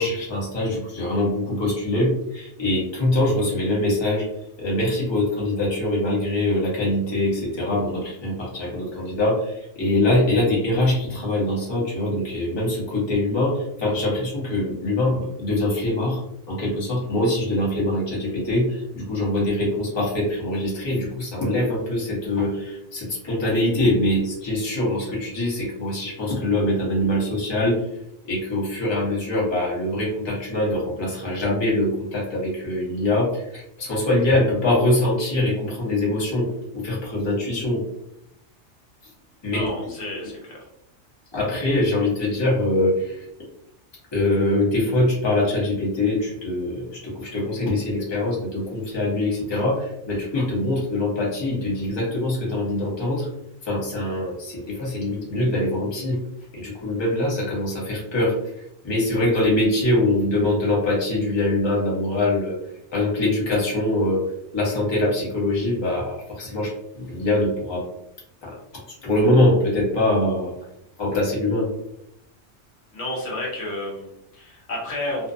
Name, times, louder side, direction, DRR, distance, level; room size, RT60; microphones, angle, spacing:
voice 1, 0.0-4.3 4.6-27.9 28.2-36.5 36.7-37.8 39.4-39.7 41.3-43.3 44.1-53.3 53.6-56.2 56.5-58.4 58.8-62.6 62.9-64.2 64.5-67.8 68.4-68.6 69.0-70.5 71.0-71.7, left 1 dB, 25° left, -5 dB, 0.8 m, -23 dB
voice 2, 39.5-40.7 72.9-75.3, left 1 dB, 70° left, -3 dB, 1.0 m, -31 dB
2.6 x 2.1 x 2.5 m, 0.80 s
omnidirectional pair, 1.2 m